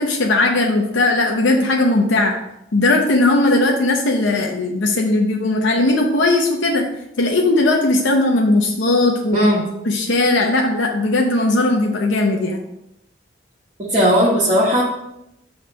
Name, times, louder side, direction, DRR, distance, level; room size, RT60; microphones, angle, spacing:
voice 1, 0.0-2.3 2.7-6.9 7.2-9.5 9.8-12.6, left 2 dB, 90° left, 0 dB, 0.8 m, -18 dB
voice 2, 9.3-9.6 13.8-14.8, equal, 30° right, -7 dB, 1.2 m, -16 dB
5.9 x 3.3 x 5.5 m, 0.84 s
head